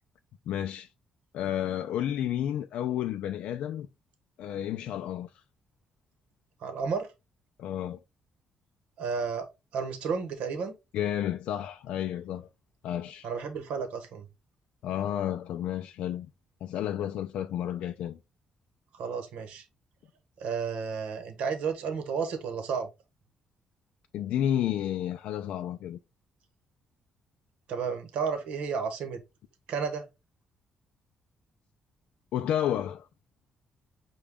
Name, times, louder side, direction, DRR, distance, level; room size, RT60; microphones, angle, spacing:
voice 1, 0.5-0.9 1.3-3.9 4.4-5.3 7.6-8.0 10.9-12.5 12.8-13.3 14.8-16.3 16.6-18.2 24.1-26.0 32.3-33.1, left 11 dB, 80° left, 0.4 m, -31 dB
voice 2, 6.6-7.1 9.0-10.7 13.2-14.3 18.9-19.6 20.4-22.9 27.7-29.2 29.7-30.0, right 5 dB, 80° right, 1.0 m, -32 dB
6.2 x 2.3 x 3.5 m
cardioid pair, 145°, 2 cm